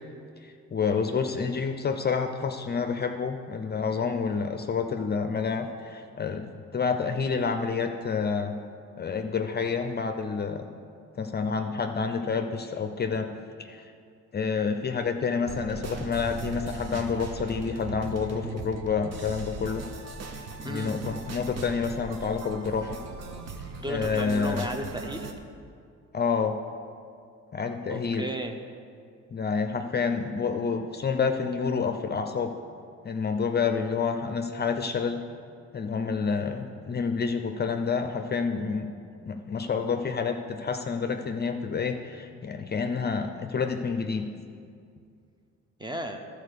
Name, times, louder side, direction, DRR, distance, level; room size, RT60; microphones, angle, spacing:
voice 1, 0.7-6.5 6.7-8.5 9.0-10.7 11.1-13.3 13.6-13.8 14.3-19.8 20.6-23.0 23.9-24.7 26.1-26.5 27.5-28.2 29.3-32.5 33.0-35.2 35.7-38.9 39.3-44.3, left 5 dB, 35° left, 6 dB, 0.6 m, -28 dB
sound 1, 15.5-25.3, right 3 dB, 55° right, 1.0 m, -39 dB
voice 2, 20.6-20.9 23.8-25.3 27.9-28.6 45.8-46.2, right 1 dB, 15° right, 5 dB, 0.8 m, -34 dB
12.5 x 4.4 x 6.7 m, 2.3 s
cardioid pair, 90°, 30 cm